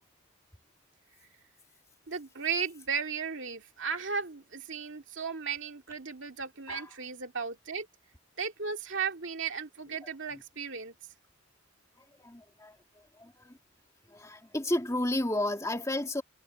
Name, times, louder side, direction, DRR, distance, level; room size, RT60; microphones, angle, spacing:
voice 1, 2.1-7.9 8.4-10.9, right 6 dB, 65° right, 2.3 m, -35 dB
voice 2, 12.2-12.7 13.2-13.5 14.1-16.2, left 1 dB, 15° left, 2.7 m, -32 dB
head